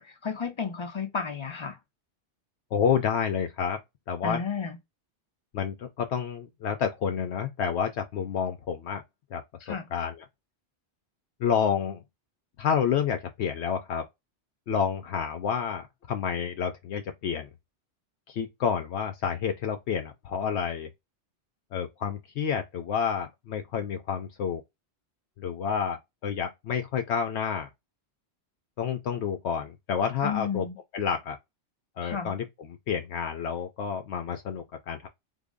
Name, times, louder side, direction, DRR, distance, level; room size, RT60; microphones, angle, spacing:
voice 1, 0.0-1.8 4.2-4.8 9.6-9.9 30.2-30.8 32.0-32.3, left 6 dB, 40° left, 0.5 m, -32 dB
voice 2, 2.7-3.8 4.1-4.4 5.5-9.0 9.3-9.4 9.7-10.2 11.4-12.0 12.6-14.1 14.7-17.5 18.3-20.9 21.7-24.6 25.4-27.7 28.8-30.7 30.9-31.4 32.0-35.1, left 7 dB, 75° left, 0.9 m, -29 dB
3.8 x 2.0 x 3.6 m
omnidirectional pair, 1.2 m